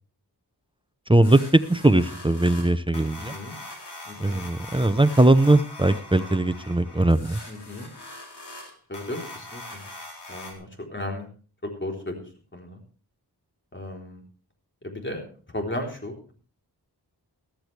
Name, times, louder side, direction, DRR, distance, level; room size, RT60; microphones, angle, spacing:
voice 1, 1.1-3.3 4.2-7.4, right 2 dB, 10° right, 12 dB, 0.7 m, -20 dB
sound 1, 1.2-10.5, left 2 dB, 75° left, 3.6 m, -42 dB
voice 2, 3.2-3.5 4.0-4.4 7.5-7.9 8.9-9.8 10.3-11.3 11.6-12.8 13.7-14.2 14.8-15.3 15.5-16.3, left 1 dB, 30° left, 2 dB, 3.7 m, -35 dB
14.5 x 14.0 x 3.3 m, 0.39 s
wide cardioid pair, 75°, 41 cm